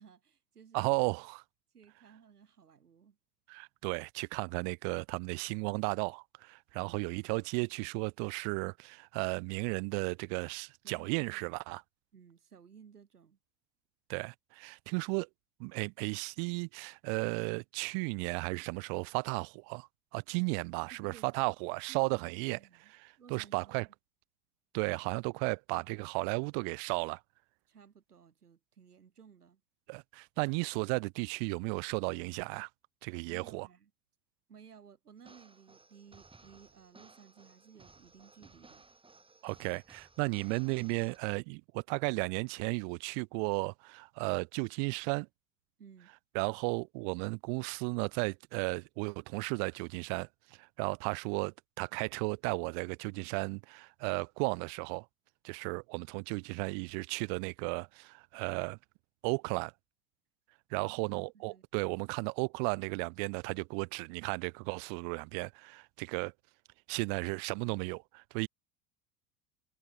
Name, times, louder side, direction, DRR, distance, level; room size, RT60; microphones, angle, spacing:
voice 1, 0.0-0.9 1.7-3.2 6.7-7.0 10.8-11.1 12.1-13.4 20.9-21.5 21.9-22.2 22.5-22.9 23.2-23.9 27.7-29.6 33.3-33.9 34.5-38.8 45.8-46.1 60.8-61.6, right 7 dB, 75° right, 6.3 m, -57 dB
voice 2, 0.7-1.4 3.5-11.8 14.1-15.3 15.6-22.6 23.0-23.9 24.7-27.2 29.9-32.7 33.0-33.7 39.4-45.3 46.3-55.0 55.4-58.8 59.2-59.7 60.7-66.3 66.9-68.5, right 40 dB or more, 50° right, 1.6 m, -34 dB
sound 1, 35.2-41.2, right 3 dB, 10° right, 3.8 m, -59 dB
figure-of-eight pair, 80°, 46 cm